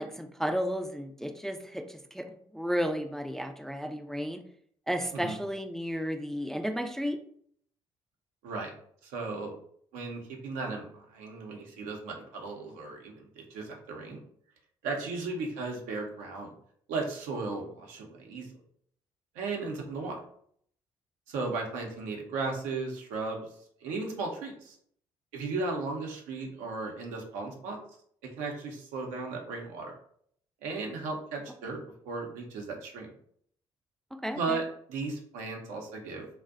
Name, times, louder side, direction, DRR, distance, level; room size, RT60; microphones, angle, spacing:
voice 1, 0.0-4.4 4.9-7.2 34.1-34.6, equal, 5° left, 5 dB, 0.3 m, -33 dB
voice 2, 9.0-9.5 9.9-14.2 14.8-16.5 16.9-18.5 19.3-20.2 21.3-23.5 23.8-24.8 25.3-27.8 28.2-30.0 30.6-31.8 32.1-33.1 34.3-34.6 34.9-36.3, right 3 dB, 75° right, 1 dB, 0.6 m, -35 dB
2.5 x 2.1 x 2.4 m, 0.64 s
hypercardioid pair, 50°, 13 cm